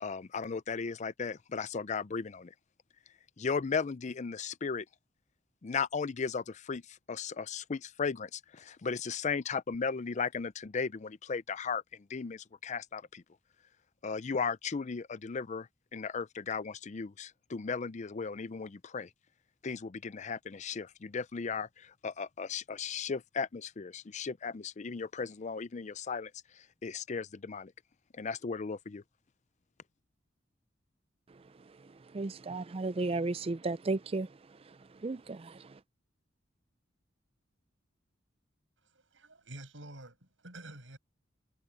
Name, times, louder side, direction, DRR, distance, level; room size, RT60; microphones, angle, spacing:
voice 1, 0.0-2.5 3.4-4.9 5.6-13.2 14.0-19.1 19.6-26.3 26.6-27.7 28.1-29.0, left 5 dB, 40° left, 0.5 m, -36 dB
voice 2, 31.3-35.8, right 3 dB, 30° right, 0.4 m, -36 dB
voice 3, 38.8-41.0, right 1 dB, 80° right, 7.9 m, -49 dB
head